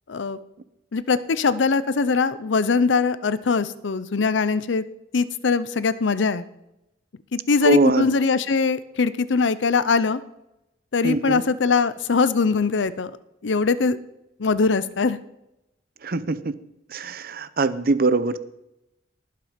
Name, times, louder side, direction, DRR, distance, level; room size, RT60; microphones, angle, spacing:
voice 1, 0.9-4.8 5.1-6.4 7.3-10.2 10.9-13.1 13.4-14.0 14.4-15.2, left 4 dB, 90° left, 15 dB, 0.6 m, -21 dB
voice 2, 7.6-8.1 11.0-11.4 16.0-16.5 16.9-18.4, right 3 dB, 55° right, 14 dB, 0.7 m, -22 dB
19.0 x 6.7 x 5.2 m, 0.87 s
head